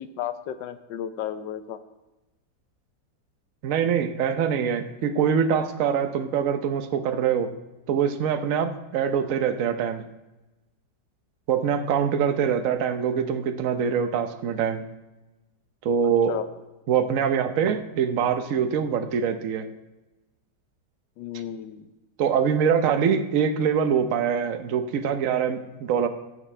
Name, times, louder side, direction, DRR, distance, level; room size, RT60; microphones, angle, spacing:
voice 1, 0.0-1.8 16.0-16.5 21.2-21.9, left 10 dB, 80° left, 11 dB, 1.4 m, -33 dB
voice 2, 3.6-7.5 7.9-10.0 11.5-14.8 15.8-16.3 16.9-19.7 22.2-26.1, right 7 dB, 55° right, 8 dB, 1.0 m, -24 dB
17.5 x 7.2 x 3.3 m, 1.1 s
omnidirectional pair, 1.9 m